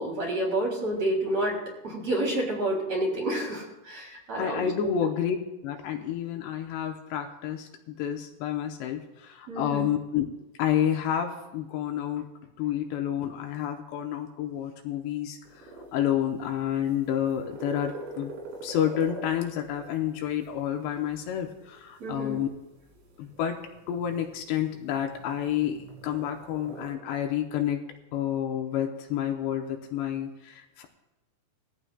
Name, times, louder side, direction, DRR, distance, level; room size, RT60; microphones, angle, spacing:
voice 1, 0.0-1.6 1.8-4.9 9.5-9.9 22.0-22.4, right 1 dB, 40° right, -2 dB, 3.7 m, -29 dB
voice 2, 4.4-5.4 5.6-10.3 10.6-12.3 12.6-18.3 18.6-22.5 23.2-23.6 23.9-27.8 28.1-30.9, left 10 dB, 80° left, 4 dB, 2.8 m, -29 dB
sound 1, 15.4-26.9, right 2 dB, 85° right, 4.6 m, -45 dB
20.5 x 14.5 x 2.3 m, 0.96 s
omnidirectional pair, 5.2 m